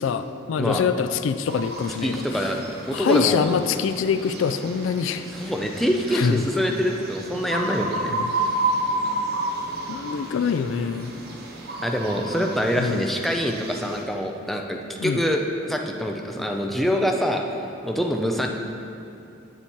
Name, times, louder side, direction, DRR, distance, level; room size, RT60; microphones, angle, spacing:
voice 1, 0.0-2.5 2.9-5.2 6.1-6.5 8.1-8.3 9.9-11.1 12.8-13.0 15.0-15.2, left 6 dB, 70° left, 10 dB, 0.3 m, -24 dB
sound 1, 1.5-14.0, right 2 dB, 50° right, 0.8 m, -31 dB
voice 2, 2.0-2.6 2.8-3.5 5.3-8.1 11.8-15.4 15.7-17.4 17.8-18.5, equal, ahead, 1 dB, 0.5 m, -25 dB
7.1 x 7.0 x 4.5 m, 2.7 s
head